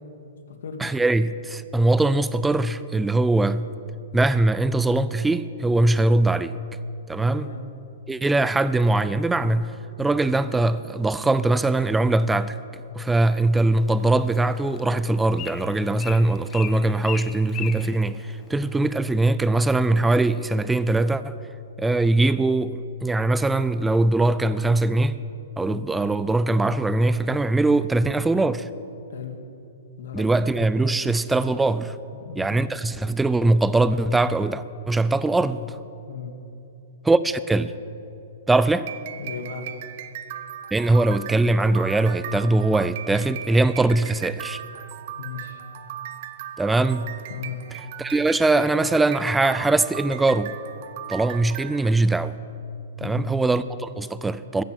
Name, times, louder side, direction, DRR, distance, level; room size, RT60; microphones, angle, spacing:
voice 1, 0.8-3.7 4.1-6.6 7.1-7.5 8.1-9.7 10.0-12.6 12.9-21.4 21.8-25.2 25.6-28.7 30.1-32.0 32.4-35.8 37.0-37.7 38.5-38.9 40.7-44.6 46.6-47.1 48.0-50.5 51.1-52.4 53.0-54.6, right 2 dB, 5° right, 0.5 m, -21 dB
voice 2, 7.3-7.6 29.1-29.4 30.0-30.3 32.1-32.6 36.1-36.3 39.2-39.7 45.2-45.6 47.3-47.6 53.0-53.3, left 7 dB, 75° left, 2.1 m, -36 dB
Bird, 13.8-19.0, left 10 dB, 25° left, 1.0 m, -40 dB
sound 1, 38.7-51.9, right 11 dB, 50° right, 0.8 m, -38 dB
15.0 x 10.5 x 7.6 m
hypercardioid pair, 140°, 0 cm